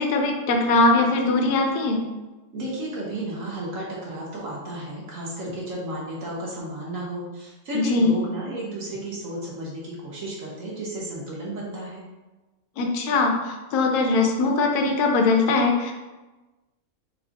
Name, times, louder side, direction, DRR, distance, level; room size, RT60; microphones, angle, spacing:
voice 1, 0.0-2.0 7.7-8.2 12.8-15.9, left 3 dB, 80° left, 2 dB, 1.2 m, -21 dB
voice 2, 2.5-12.0, right 1 dB, 60° right, -5 dB, 1.3 m, -33 dB
4.0 x 2.4 x 3.9 m, 1.1 s
omnidirectional pair, 1.7 m